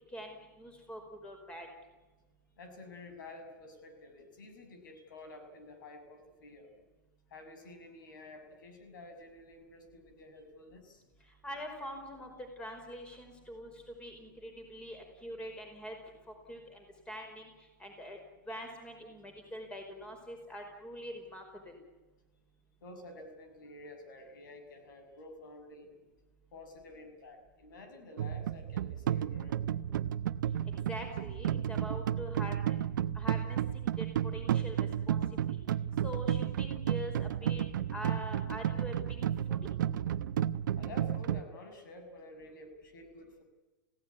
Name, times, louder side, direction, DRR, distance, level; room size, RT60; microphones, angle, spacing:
voice 1, 0.1-1.7 11.4-12.3 12.6-13.7 14.0-16.0 16.5-17.5 17.8-18.2 18.5-21.8 30.9-32.8 33.1-34.1 34.3-35.2 35.5-35.6 36.0-37.6 37.9-39.0 39.5-39.6, equal, 10° left, 4 dB, 5.2 m, -44 dB
voice 2, 2.5-6.7 7.3-11.0 22.8-25.9 26.5-29.9 40.7-43.4, left 2 dB, 80° left, 6 dB, 7.0 m, -50 dB
sound 1, 28.2-41.4, right 10 dB, 75° right, 1.0 m, -32 dB
29.5 x 17.0 x 9.8 m, 1.2 s
supercardioid pair, 150°, 11 cm